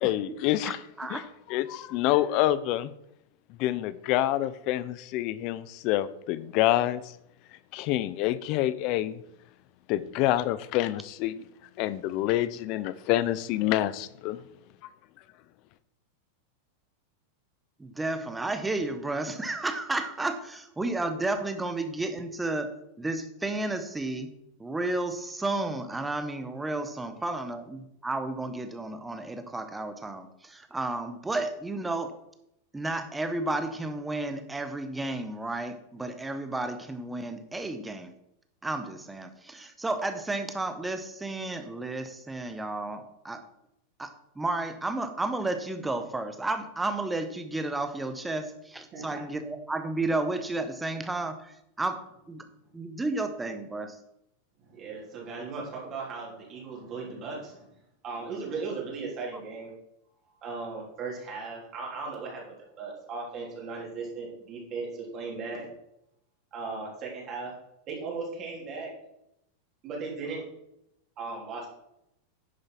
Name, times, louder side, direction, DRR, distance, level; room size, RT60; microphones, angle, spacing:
voice 1, 0.0-0.8 1.1-1.2 1.5-2.9 3.6-7.0 7.7-9.2 9.9-11.4 11.8-14.4, left 14 dB, 40° left, 17 dB, 0.6 m, -27 dB
voice 2, 0.6-1.3 17.8-22.7 23.0-24.3 24.6-32.1 32.7-38.1 38.6-43.4 44.0-52.0 52.3-52.5 52.7-54.0, right 2 dB, 5° right, 8 dB, 1.0 m, -32 dB
voice 3, 48.9-49.2 54.6-57.7 58.0-59.7 60.4-65.7 66.5-67.5 67.9-68.9 69.8-70.4 71.2-71.7, right 4 dB, 30° right, -3 dB, 3.6 m, -37 dB
10.5 x 6.6 x 5.9 m, 0.81 s
supercardioid pair, 160°, 0 cm